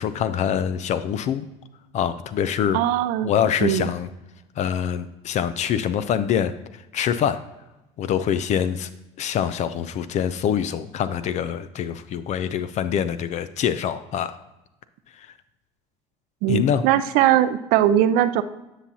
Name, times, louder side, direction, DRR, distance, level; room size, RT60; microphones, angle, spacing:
voice 1, 0.0-1.5 1.9-2.8 3.2-4.1 4.6-6.5 6.9-7.4 8.0-8.9 9.2-14.4 15.2-15.3 16.5-16.8, left 9 dB, 55° left, 13 dB, 0.4 m, -24 dB
voice 2, 2.7-3.3 3.6-3.9 16.4-18.4, right 12 dB, 75° right, 13 dB, 0.5 m, -20 dB
9.7 x 5.8 x 2.7 m, 0.97 s
supercardioid pair, 80°, 15 cm